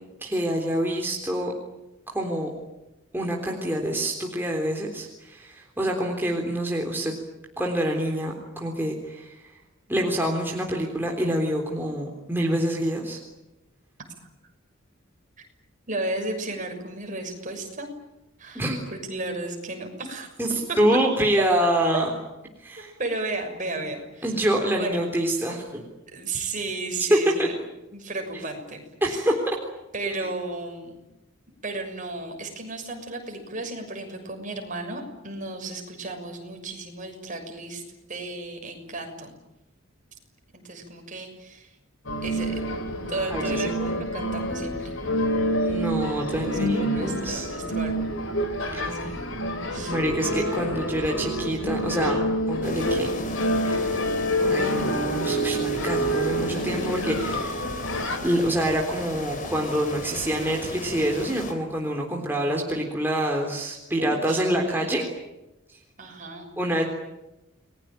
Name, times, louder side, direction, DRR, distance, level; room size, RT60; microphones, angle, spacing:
voice 1, 0.2-1.5 2.1-2.5 3.1-7.1 7.6-9.6 9.9-13.2 18.6-18.8 20.4-22.0 22.6-22.9 24.2-25.8 27.1-27.5 29.0-29.3 30.2-30.3 43.3-43.8 45.6-47.5 48.7-49.0 49.9-53.1 53.6-54.0 54.4-57.7 58.2-65.0 65.7-65.8 66.6-66.8, right 1 dB, 10° right, 0 dB, 3.6 m, -26 dB
voice 2, 15.9-17.9 18.4-20.3 21.4-22.0 22.8-24.3 24.8-25.0 26.1-27.5 27.9-29.3 29.9-31.0 31.6-37.8 38.1-39.4 40.5-41.8 42.2-42.6 43.1-45.0 46.7-48.2 48.6-49.3 49.7-50.0 64.0-65.0 66.0-66.5, right 2 dB, 40° right, 4 dB, 6.4 m, -34 dB
sound 1, 42.1-58.2, equal, 70° left, 4.1 m, -27 dB
sound 2, 52.6-61.5, left 2 dB, 40° left, 4.1 m, -36 dB
30.0 x 21.0 x 9.0 m, 0.98 s
head